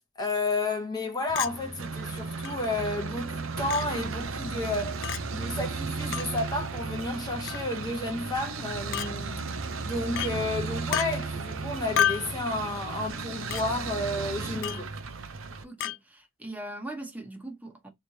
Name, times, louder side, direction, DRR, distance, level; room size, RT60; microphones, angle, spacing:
voice 1, 0.2-5.0 5.3-9.5 9.8-14.9, left 2 dB, 20° left, 0.8 m, -31 dB
sound 1, 1.3-15.6, right 4 dB, 75° right, 0.6 m, -35 dB
Chink clink, 1.4-1.5 2.4-2.5 3.7-3.9 5.0-5.2 6.1-6.3 7.5-7.7 8.9-9.1 10.2-10.3 10.9-11.1 12.0-12.3 13.5-13.6 14.6-14.9 15.8-16.0, left 10 dB, 65° left, 0.3 m, -29 dB
voice 2, 15.6-17.9, right 1 dB, 10° right, 1.0 m, -40 dB
3.2 x 3.2 x 2.7 m
head